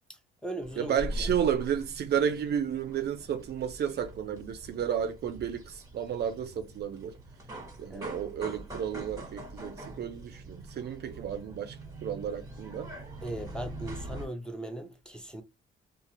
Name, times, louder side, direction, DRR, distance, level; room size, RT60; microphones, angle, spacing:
voice 1, 0.1-1.3 7.9-8.1 13.2-15.4, right 1 dB, 5° left, 0.7 m, -39 dB
sound 1, 0.6-14.3, right 1 dB, 15° right, 1.3 m, -43 dB
voice 2, 0.8-7.2 7.8-12.9, right 8 dB, 55° right, 0.5 m, -32 dB
2.5 x 2.4 x 2.9 m
cardioid pair, 90°, 20 cm